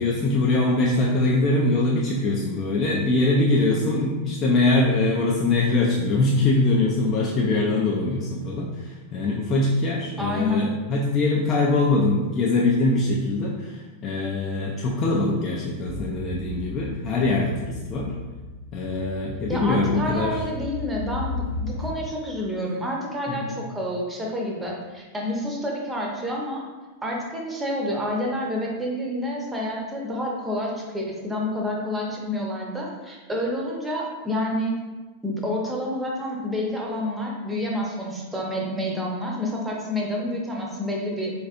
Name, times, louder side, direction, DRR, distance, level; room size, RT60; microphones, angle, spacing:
voice 1, 0.0-18.1 18.7-20.4 23.3-23.5, left 2 dB, 30° left, -3 dB, 0.4 m, -23 dB
voice 2, 10.2-10.7 19.5-26.6 27.0-34.8 35.2-41.3, left 1 dB, 10° right, -2 dB, 0.7 m, -28 dB
sound 1, 15.9-22.2, left 3 dB, 80° right, 0.7 m, -35 dB
3.9 x 2.5 x 2.5 m, 1.2 s
figure-of-eight pair, 90°, 0 cm